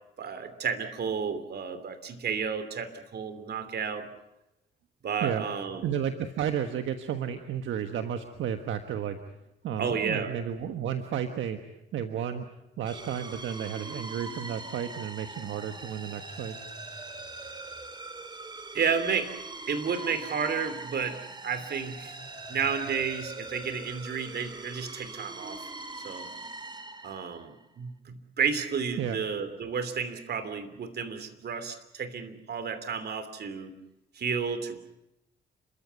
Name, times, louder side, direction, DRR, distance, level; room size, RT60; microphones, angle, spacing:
voice 1, 0.2-4.1 5.0-5.9 9.8-10.3 18.7-19.4 19.7-22.1 22.5-25.7 26.0-26.3 27.0-33.7 34.1-34.8, right 6 dB, 55° right, 11 dB, 2.9 m, -32 dB
voice 2, 5.8-9.2 9.6-11.6 11.9-12.4 12.8-16.6 29.0-29.2, right 9 dB, 75° right, 8 dB, 1.4 m, -32 dB
sound 1, 12.9-27.6, right 2 dB, 20° right, 2.4 m, -42 dB
30.0 x 14.0 x 9.4 m, 0.90 s
cardioid pair, 90°, 20 cm